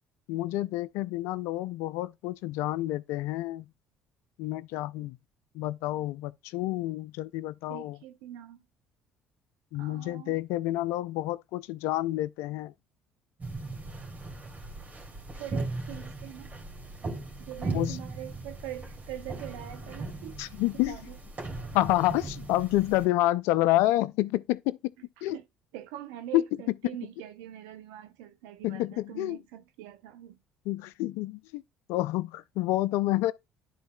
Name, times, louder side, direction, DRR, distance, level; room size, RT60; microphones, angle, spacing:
voice 1, 0.3-3.7 4.4-5.2 5.5-8.0 9.7-12.7 17.7-18.0 20.4-21.0 21.7-24.8 25.2-25.4 26.3-26.4 28.6-29.4 30.7-31.6 31.9-33.3, left 16 dB, 70° left, 0.4 m, -28 dB
voice 2, 7.7-8.7 9.8-10.4 15.3-16.5 17.4-20.4 20.9-21.2 25.2-25.4 25.7-30.4, right 12 dB, 75° right, 0.6 m, -43 dB
sound 1, 13.4-23.1, right 2 dB, 35° right, 2.2 m, -38 dB
12.0 x 4.0 x 2.3 m
hypercardioid pair, 60°, 5 cm